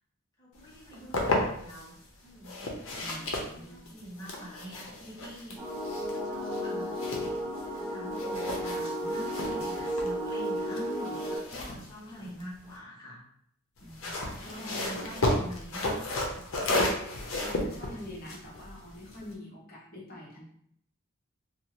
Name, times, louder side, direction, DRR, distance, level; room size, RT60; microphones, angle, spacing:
voice 1, 0.4-7.0 7.6-10.9 11.2-13.2 14.3-16.0 16.3-16.5, equal, 20° left, -7 dB, 0.9 m, -46 dB
sound 1, 0.7-1.9 2.4-7.8 8.1-12.8 13.8-19.3, left 1 dB, 80° left, 0.6 m, -34 dB
voice 2, 3.0-3.9 9.0-9.6 10.6-11.2 11.5-12.3 13.8-14.1 14.4-15.1 17.4-20.5, left 1 dB, 45° left, -3 dB, 0.8 m, -45 dB
sound 2, 5.6-11.4, equal, 15° right, 0.7 m, -33 dB
2.6 x 2.4 x 2.9 m, 0.70 s
head